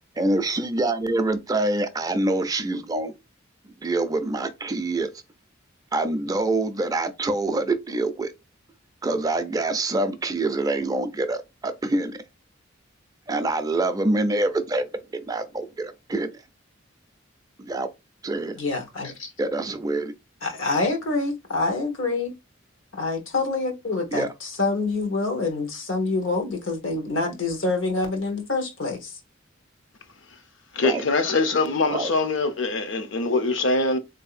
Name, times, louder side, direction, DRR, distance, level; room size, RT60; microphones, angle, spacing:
voice 1, 0.2-3.1 3.8-5.1 5.9-8.3 9.0-12.2 13.3-14.9 15.1-16.4 17.6-17.9 18.2-18.6 19.4-20.1 24.1-24.3 30.8-31.0 31.9-32.1, right 2 dB, 20° right, 0.3 m, -25 dB
voice 2, 18.6-19.3 20.4-22.3 22.9-29.1, left 3 dB, 85° left, 1.0 m, -26 dB
voice 3, 30.7-34.0, left 3 dB, 70° left, 0.6 m, -23 dB
3.7 x 2.6 x 2.4 m
head